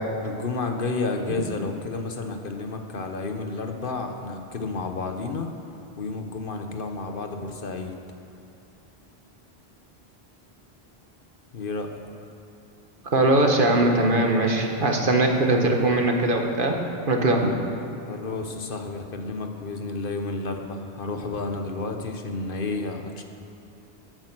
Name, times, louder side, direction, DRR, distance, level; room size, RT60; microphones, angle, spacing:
voice 1, 0.2-5.5 6.0-7.9 11.5-11.9 18.1-23.2, left 3 dB, 60° left, 4 dB, 1.1 m, -31 dB
voice 2, 13.1-16.7 17.1-17.6, right 2 dB, 55° right, 2 dB, 1.5 m, -21 dB
14.0 x 9.0 x 6.1 m, 2.8 s
omnidirectional pair, 1.1 m